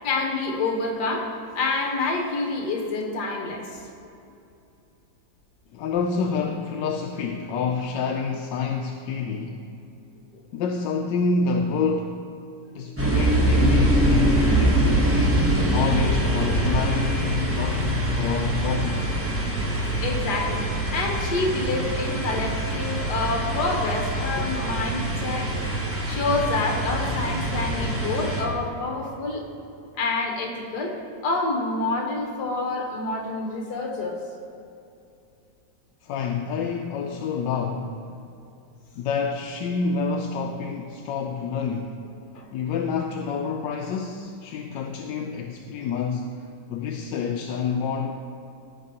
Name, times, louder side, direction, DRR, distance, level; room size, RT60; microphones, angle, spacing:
voice 1, 0.0-3.8 20.0-20.6 20.9-25.5 26.1-29.4 29.9-30.9 31.2-34.2 42.3-42.5, left 3 dB, 65° left, 1 dB, 1.6 m, -27 dB
voice 2, 5.7-9.6 10.5-12.2 12.7-14.9 15.7-19.1 36.0-38.0 39.0-41.9 42.5-46.3 46.7-48.1, left 5 dB, 85° left, 2 dB, 1.2 m, -28 dB
sound 1, 13.0-28.4, right 1 dB, 10° right, 0.8 m, -24 dB
15.0 x 5.4 x 2.9 m, 2.7 s
omnidirectional pair, 1.9 m